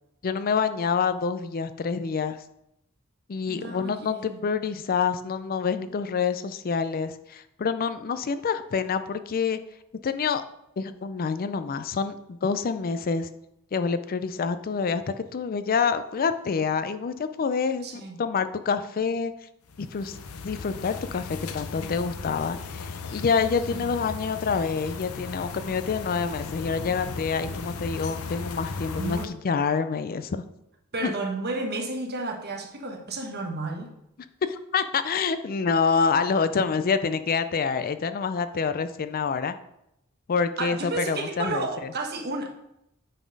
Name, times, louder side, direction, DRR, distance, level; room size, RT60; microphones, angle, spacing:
voice 1, 0.2-2.4 3.3-9.6 10.0-10.4 10.8-12.2 12.4-13.3 13.7-19.3 19.8-20.2 20.4-30.4 31.0-31.1 34.4-39.5 40.3-41.9, left 5 dB, 45° left, 11 dB, 0.4 m, -27 dB
voice 2, 3.5-4.4 17.8-18.2 23.7-23.9 29.0-29.3 30.9-33.9 40.6-42.5, right 3 dB, 50° right, 3 dB, 1.2 m, -32 dB
sound 1, 19.7-29.3, left 4 dB, 85° left, 0.7 m, -36 dB
9.1 x 4.2 x 5.3 m, 0.82 s
head